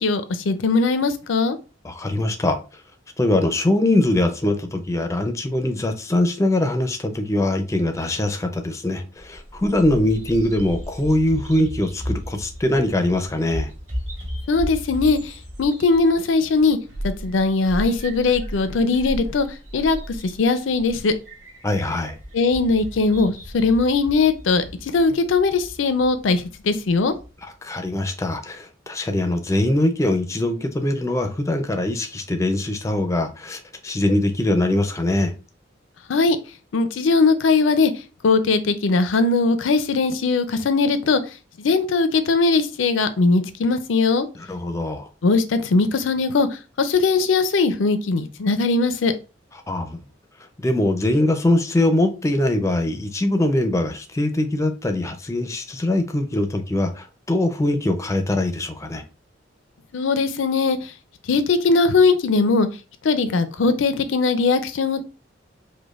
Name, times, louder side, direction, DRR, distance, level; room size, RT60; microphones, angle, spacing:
voice 1, 0.0-1.6 14.5-15.3 15.6-16.8 17.0-19.5 19.7-20.0 20.4-21.1 22.3-24.6 24.9-27.1 36.1-36.4 36.7-37.9 38.2-41.2 41.6-44.3 45.2-46.5 46.8-49.1 59.9-60.8 61.3-62.7 63.0-65.0, left 4 dB, 85° left, 0.5 m, -20 dB
voice 2, 1.8-2.6 3.2-13.7 21.6-22.2 27.6-35.3 44.4-45.1 49.7-50.0 50.6-59.0, left 1 dB, 15° left, 0.4 m, -22 dB
Bird vocalization bird call bird song, 9.2-27.3, equal, 85° right, 1.8 m, -35 dB
5.0 x 2.1 x 2.4 m
head